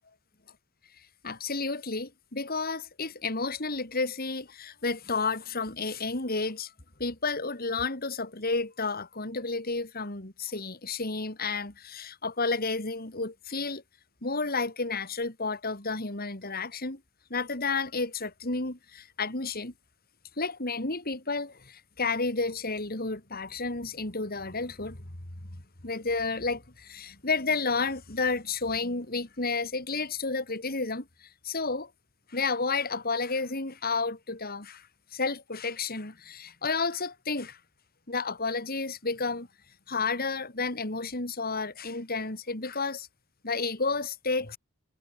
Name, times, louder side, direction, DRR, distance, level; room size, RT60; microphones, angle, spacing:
voice 1, 1.2-6.7 7.0-13.8 14.2-17.0 17.3-19.7 20.4-25.1 25.8-31.9 32.3-34.9 35.1-37.6 38.1-39.5 39.9-43.1 43.4-44.6, left 4 dB, 45° left, 3.3 m, -31 dB
head